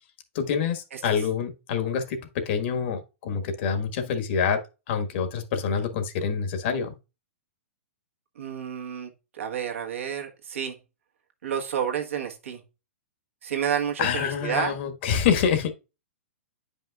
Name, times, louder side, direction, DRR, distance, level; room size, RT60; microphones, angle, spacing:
voice 1, 0.3-4.6 4.9-6.9 14.0-15.7, left 7 dB, 55° left, 1.5 m, -26 dB
voice 2, 8.3-10.8 11.4-12.6 13.4-14.8, right 8 dB, 75° right, 1.5 m, -30 dB
9.4 x 5.4 x 2.3 m
hypercardioid pair, 120°, 7 cm